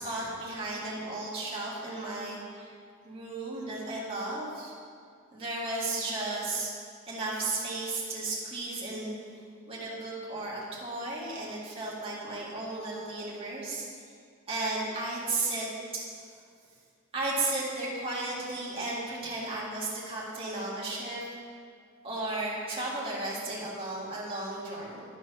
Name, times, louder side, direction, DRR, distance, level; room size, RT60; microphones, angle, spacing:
voice 1, 0.0-2.7 3.0-4.7 5.3-6.7 7.1-9.2 9.7-13.9 14.5-15.7 15.9-16.0 17.1-21.2 22.0-25.0, right 2 dB, 25° right, -7 dB, 2.0 m, -34 dB
11.5 x 4.6 x 5.5 m, 2.2 s
head